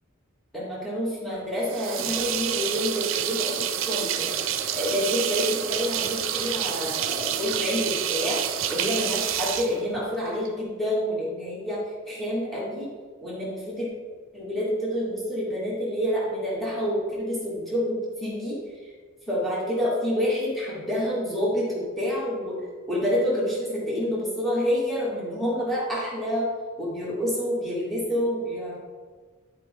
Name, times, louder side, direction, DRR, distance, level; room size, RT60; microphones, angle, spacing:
voice 1, 0.5-4.3 4.7-8.4 8.7-11.8 12.1-12.9 13.2-13.9 14.3-18.6 19.3-22.5 22.9-26.5 26.8-28.8, equal, ahead, -8 dB, 2.2 m, -28 dB
sound 1, 1.7-10.5, right 10 dB, 70° right, 0.6 m, -28 dB
sound 2, 1.9-9.0, right 2 dB, 30° right, 0.8 m, -41 dB
11.0 x 5.2 x 3.7 m, 1.5 s
head